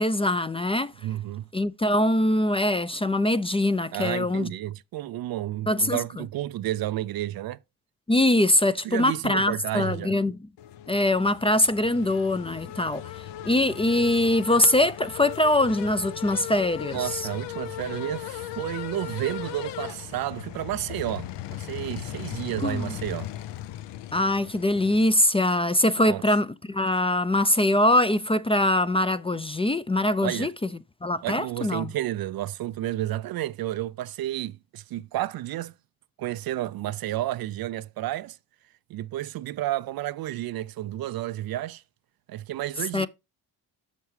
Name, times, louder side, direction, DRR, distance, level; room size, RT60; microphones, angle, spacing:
voice 1, 0.0-0.9 1.5-4.5 5.7-6.0 8.1-10.4 10.9-13.0 13.4-17.0 22.6-22.9 24.1-30.5 31.0-31.9 42.9-43.1, left 1 dB, 15° left, 0.4 m, -23 dB
voice 2, 1.0-1.4 3.9-7.6 8.8-10.1 16.9-23.3 26.0-26.2 30.2-30.5 31.2-35.7 36.2-38.4 38.9-41.8 42.3-43.1, right 14 dB, 50° right, 0.4 m, -31 dB
sound 1, 10.6-25.2, left 13 dB, 65° left, 0.7 m, -37 dB
7.3 x 6.4 x 3.2 m
hypercardioid pair, 50°, 47 cm